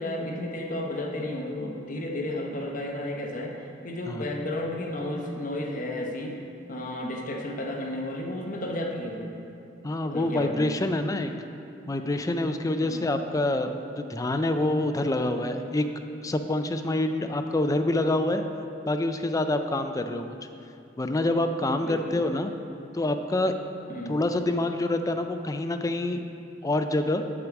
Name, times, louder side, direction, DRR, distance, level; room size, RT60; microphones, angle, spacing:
voice 1, 0.0-6.4 6.7-9.3 10.1-10.7 12.8-13.1 21.8-22.2 23.9-24.2, left 1 dB, 45° left, 1 dB, 0.9 m, -32 dB
voice 2, 9.8-11.3 11.9-15.9 16.2-18.4 18.9-20.3 21.0-22.5 22.9-23.5 24.1-26.2 26.6-27.2, left 2 dB, 15° left, 7 dB, 0.4 m, -26 dB
8.6 x 4.6 x 7.1 m, 2.6 s
head